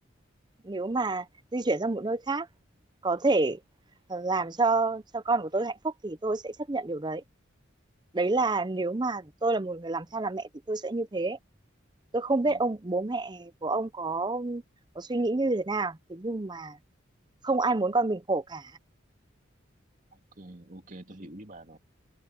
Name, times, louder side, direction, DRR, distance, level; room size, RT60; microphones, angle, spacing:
voice 1, 0.6-1.3 1.5-2.5 3.0-3.6 4.1-7.2 8.1-11.4 12.1-14.6 15.0-16.8 17.4-18.7, right 3 dB, 20° right, 0.6 m, -28 dB
voice 2, 20.1-21.8, right 1 dB, 40° right, 2.7 m, -46 dB
open air
head